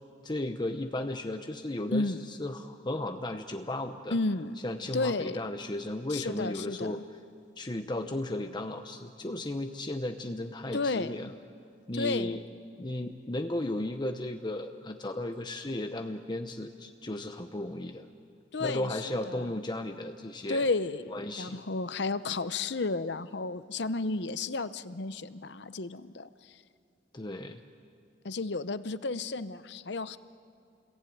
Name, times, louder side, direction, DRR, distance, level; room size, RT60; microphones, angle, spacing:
voice 1, 0.2-4.2 4.6-7.0 7.6-11.3 11.9-12.4 12.8-18.1 18.6-20.7 21.1-21.6 27.1-27.6, left 1 dB, 25° left, 6 dB, 0.8 m, -35 dB
voice 2, 4.1-4.6 4.9-5.4 6.1-7.0 10.7-11.2 11.9-12.4 18.5-19.5 20.5-26.6 28.2-30.2, left 3 dB, 65° left, 14 dB, 0.8 m, -32 dB
29.5 x 21.5 x 9.3 m, 2.4 s
head